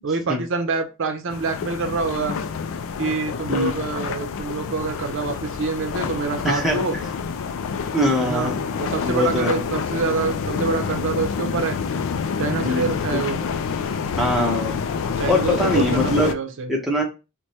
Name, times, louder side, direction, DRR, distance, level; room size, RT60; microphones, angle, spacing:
voice 1, 0.0-2.4 3.0-6.9 8.2-11.8 12.4-13.4 15.2-16.7, right 4 dB, 60° right, 6 dB, 0.6 m, -26 dB
sound 1, 1.3-16.3, left 6 dB, 60° left, 0.3 m, -27 dB
voice 2, 6.4-6.8 7.9-8.6 9.0-9.6 12.6-12.9 14.2-14.8 15.3-16.3 16.7-17.0, left 1 dB, ahead, -2 dB, 0.7 m, -22 dB
4.5 x 2.1 x 2.7 m, 0.29 s
head